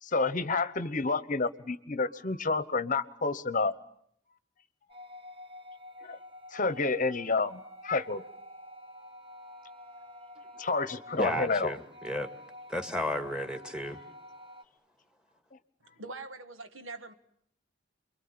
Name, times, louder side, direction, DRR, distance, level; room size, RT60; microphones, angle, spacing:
voice 1, 0.0-3.7 6.0-6.2 6.5-8.2 10.6-11.7, left 3 dB, 40° left, 1.0 m, -29 dB
sound 1, 4.9-14.6, left 1 dB, 25° right, 1.2 m, -49 dB
voice 2, 11.2-12.3 12.7-14.0, left 1 dB, 5° right, 2.1 m, -33 dB
voice 3, 15.8-17.1, right 3 dB, 80° right, 1.8 m, -43 dB
29.0 x 23.0 x 8.7 m
head